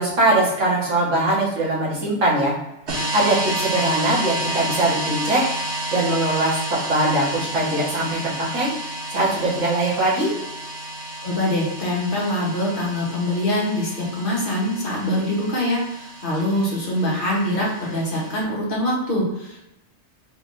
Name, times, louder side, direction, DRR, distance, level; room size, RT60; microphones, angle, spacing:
voice 1, 0.0-2.6 3.1-5.4 5.9-8.7 9.1-10.3, right 2 dB, 90° right, -6 dB, 1.7 m, -21 dB
sound 1, 2.9-18.4, right 1 dB, 65° right, 1.1 m, -31 dB
voice 2, 11.2-19.7, left 1 dB, 45° left, -4 dB, 1.3 m, -24 dB
4.5 x 3.5 x 2.6 m, 0.89 s
omnidirectional pair, 1.2 m